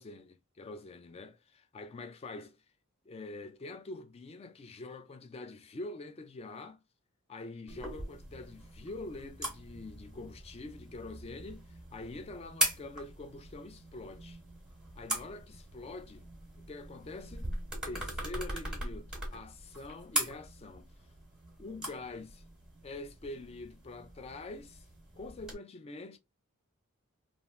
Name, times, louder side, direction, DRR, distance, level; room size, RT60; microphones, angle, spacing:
voice 1, 0.0-2.6 3.1-6.8 7.3-14.4 15.0-16.2 16.6-17.5 17.9-20.9 21.6-22.4 22.8-24.9 25.2-26.2, left 2 dB, 25° left, 0.3 m, -45 dB
sound 1, 7.7-25.5, right 1 dB, 5° right, 1.0 m, -40 dB
3.1 x 2.4 x 2.4 m
head